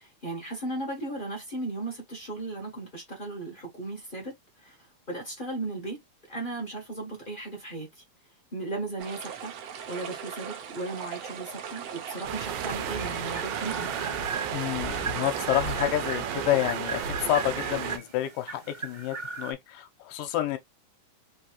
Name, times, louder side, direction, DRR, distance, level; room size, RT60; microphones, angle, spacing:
voice 1, 0.0-4.8 5.1-6.0 6.3-8.0 8.5-9.5 9.9-13.9, right 2 dB, 50° left, 0.6 m, -36 dB
sound 1, 9.0-15.9, right 8 dB, 70° right, 1.6 m, -39 dB
sound 2, 12.2-18.0, right 8 dB, 85° right, 2.4 m, -33 dB
sound 3, 12.7-19.5, right 4 dB, 35° right, 0.9 m, -38 dB
voice 2, 14.5-20.6, left 13 dB, 80° left, 2.3 m, -29 dB
5.4 x 2.8 x 3.0 m
omnidirectional pair, 3.8 m